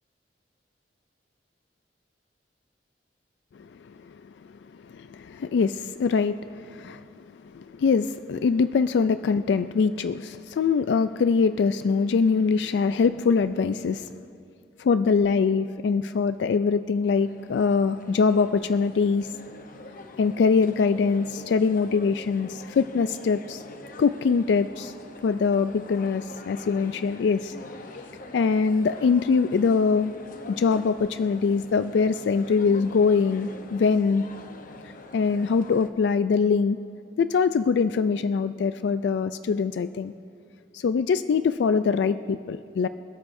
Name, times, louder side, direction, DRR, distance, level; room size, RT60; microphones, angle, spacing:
voice 1, 4.8-14.1 14.8-19.3 20.2-23.6 24.0-24.9 25.2-27.6 28.3-30.1 30.5-34.2 35.1-36.8 37.2-40.1 40.7-42.9, left 5 dB, 70° left, 12 dB, 0.3 m, -23 dB
sound 1, 17.1-35.9, left 2 dB, 50° left, 0.8 m, -44 dB
27.5 x 13.0 x 2.6 m, 2.4 s
head